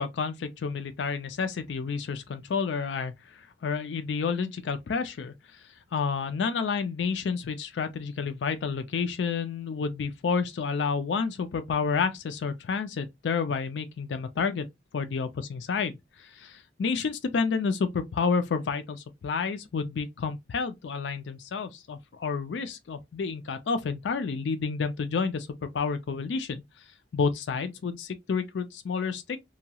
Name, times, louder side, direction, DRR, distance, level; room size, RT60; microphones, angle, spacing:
voice 1, 0.0-5.6 5.9-14.6 14.9-26.6 27.1-29.4, left 5 dB, 85° left, 0.4 m, -30 dB
2.8 x 2.2 x 2.8 m
head